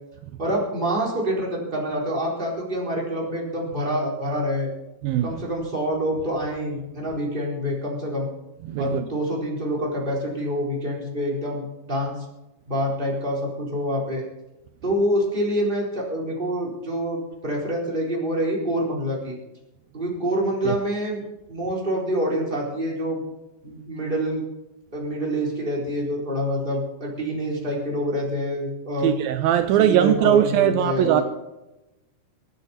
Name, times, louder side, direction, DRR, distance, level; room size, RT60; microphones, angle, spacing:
voice 1, 0.4-4.7 5.2-8.3 8.8-12.1 12.7-14.2 14.8-19.4 19.9-21.2 21.5-23.2 23.6-24.4 24.9-29.1 29.8-31.2, equal, 15° right, 4.1 m, -26 dB
voice 2, 5.0-5.4 8.6-9.1 20.6-20.8 29.0-31.2, right 11 dB, 80° right, 2.5 m, -20 dB
24.5 x 9.5 x 4.3 m
omnidirectional pair, 4.3 m